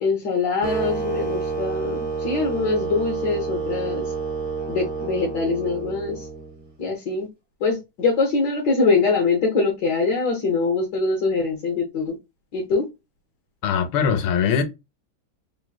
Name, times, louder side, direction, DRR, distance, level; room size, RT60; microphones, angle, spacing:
voice 1, 0.0-4.1 4.7-6.2 6.8-7.3 7.6-12.2 12.5-12.8, left 4 dB, 60° left, 1.4 m, -23 dB
sound 1, 0.6-6.7, right 4 dB, 25° right, 0.5 m, -29 dB
voice 2, 13.6-14.6, left 7 dB, 80° left, 1.5 m, -21 dB
3.9 x 3.0 x 2.2 m
omnidirectional pair, 2.3 m